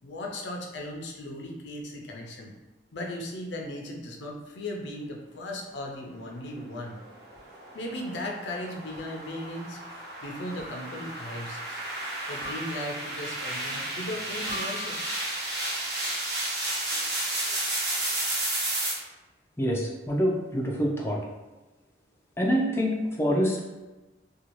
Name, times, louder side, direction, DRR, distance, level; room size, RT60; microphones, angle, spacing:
voice 1, 0.0-2.5 2.9-7.0 7.7-9.8 10.2-11.8 12.3-15.3, left 1 dB, 70° left, 0 dB, 0.5 m, -37 dB
sound 1, 6.9-18.9, right 1 dB, 65° right, 0.9 m, -32 dB
sound 2, 7.4-7.5 9.0-9.3 10.6-11.2 12.4-13.2 14.5-15.4, left 1 dB, 80° right, 1.2 m, -44 dB
voice 2, 19.6-21.2 22.4-23.7, equal, 15° left, -2 dB, 0.4 m, -26 dB
2.6 x 2.3 x 3.0 m, 1.1 s
head